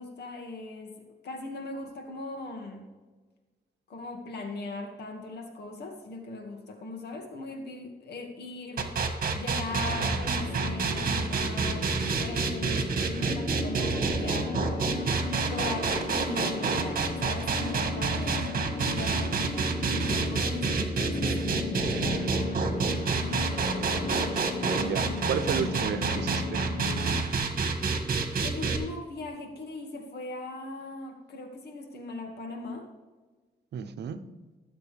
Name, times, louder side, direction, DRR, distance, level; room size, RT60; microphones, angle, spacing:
voice 1, 0.0-2.9 3.9-8.9 9.3-11.9 12.2-14.9 15.4-19.4 19.9-22.4 28.4-32.9, left 2 dB, 80° left, 3 dB, 2.1 m, -39 dB
sound 1, 8.8-28.8, right 4 dB, 55° right, 1.7 m, -28 dB
sound 2, 9.7-27.2, left 3 dB, 45° left, 1.1 m, -36 dB
voice 2, 24.7-26.6 33.7-34.2, right 7 dB, 85° right, 10 dB, 0.8 m, -32 dB
17.0 x 7.6 x 3.5 m, 1.3 s
cardioid pair, 90°, 17 cm